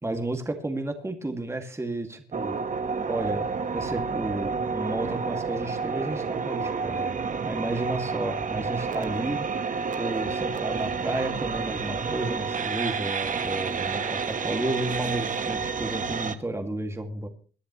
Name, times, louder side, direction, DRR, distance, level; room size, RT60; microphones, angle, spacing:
voice 1, 0.0-2.6 3.1-7.1 7.4-9.5 10.0-17.3, right 2 dB, 15° right, 5 dB, 2.1 m, -32 dB
sound 1, 2.3-16.4, right 5 dB, 40° right, 1.2 m, -30 dB
22.5 x 10.5 x 3.1 m, 0.38 s
cardioid pair, 90°, 20 cm